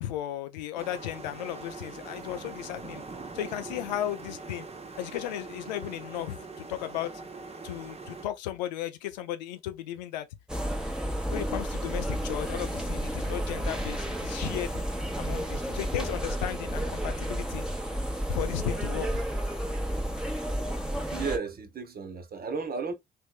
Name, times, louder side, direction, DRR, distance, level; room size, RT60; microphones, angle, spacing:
voice 1, 0.0-3.0 3.3-4.7 5.0-7.1 7.6-10.3 11.3-14.8 15.2-17.6 18.3-19.2, left 12 dB, 90° left, 0.4 m, -35 dB
sound 1, 0.8-8.3, right 3 dB, 30° right, 0.9 m, -42 dB
sound 2, 10.5-21.4, right 1 dB, 5° right, 1.0 m, -31 dB
voice 2, 21.1-22.9, right 5 dB, 45° right, 1.2 m, -33 dB
3.3 x 3.1 x 2.3 m
hypercardioid pair, 50°, 21 cm